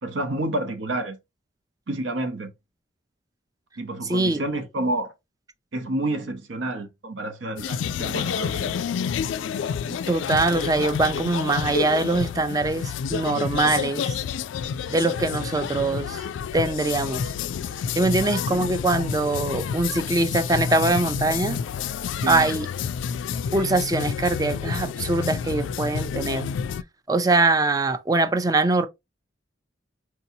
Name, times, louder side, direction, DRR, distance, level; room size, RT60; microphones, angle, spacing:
voice 1, 0.0-1.2 1.9-2.5 3.8-5.1 5.7-8.8 22.2-22.5, right 1 dB, 75° right, 0.8 m, -29 dB
voice 2, 4.0-4.4 9.9-14.2 14.9-16.2 16.5-17.3 18.0-21.6 22.3-22.7 23.5-26.5 27.1-28.9, right 2 dB, 20° right, 0.4 m, -23 dB
sound 1, 7.6-26.8, left 7 dB, 75° left, 0.3 m, -29 dB
4.5 x 2.8 x 2.7 m
head